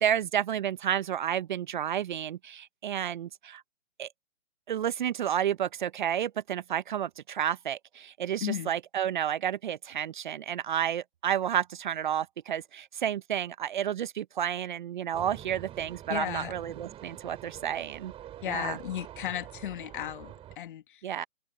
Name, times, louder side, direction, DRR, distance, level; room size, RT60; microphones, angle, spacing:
voice 1, 0.0-3.6 4.0-4.1 4.7-18.1 18.5-18.8 21.0-21.3, right 10 dB, 35° right, 0.9 m, -31 dB
sound 1, 15.1-20.6, right 12 dB, 15° right, 4.0 m, -46 dB
voice 2, 16.1-16.5 18.4-21.1, left 11 dB, 40° left, 1.7 m, -35 dB
figure-of-eight pair, 145°, 39 cm